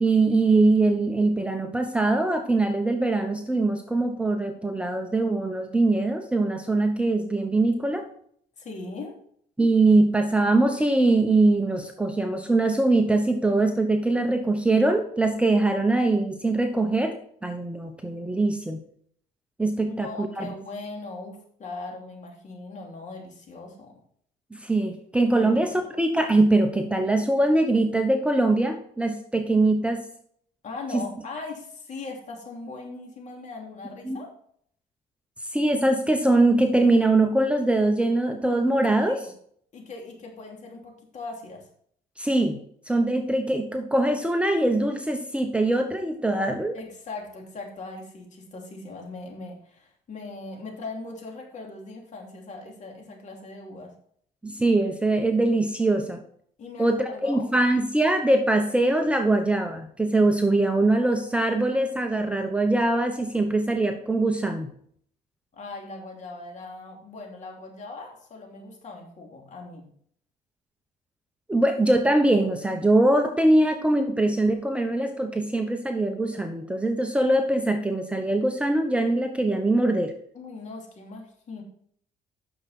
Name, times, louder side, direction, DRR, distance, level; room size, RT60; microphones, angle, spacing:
voice 1, 0.0-8.1 9.6-17.1 17.4-18.8 19.6-20.5 24.5-25.7 26.0-30.0 30.9-31.0 34.1-34.2 35.5-39.3 42.2-42.6 42.9-46.8 54.4-56.2 56.8-64.7 71.5-80.1, right 2 dB, 5° right, 5 dB, 0.9 m, -22 dB
voice 2, 8.6-9.2 19.8-23.9 25.4-25.8 30.6-34.3 39.1-39.3 39.7-41.7 46.7-53.9 56.6-57.5 65.5-69.9 80.3-81.6, left 3 dB, 45° left, 1 dB, 3.0 m, -39 dB
9.7 x 6.7 x 4.2 m, 0.62 s
cardioid pair, 110°, 17 cm